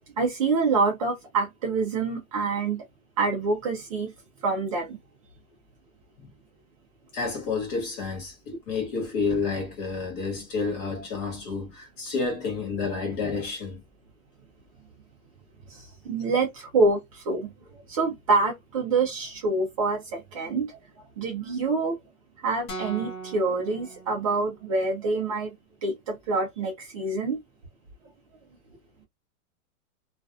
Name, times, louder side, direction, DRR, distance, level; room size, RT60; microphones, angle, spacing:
voice 1, 0.2-2.8 3.2-4.1 4.4-5.0 15.7-20.8 21.2-22.0 22.4-25.5 25.8-27.4, right 3 dB, 25° right, 0.5 m, -26 dB
voice 2, 7.1-13.8, left 4 dB, 30° left, 0.9 m, -30 dB
sound 1, 22.7-24.8, right 3 dB, 75° left, 1.1 m, -39 dB
2.4 x 2.3 x 2.4 m
hypercardioid pair, 155°, 42 cm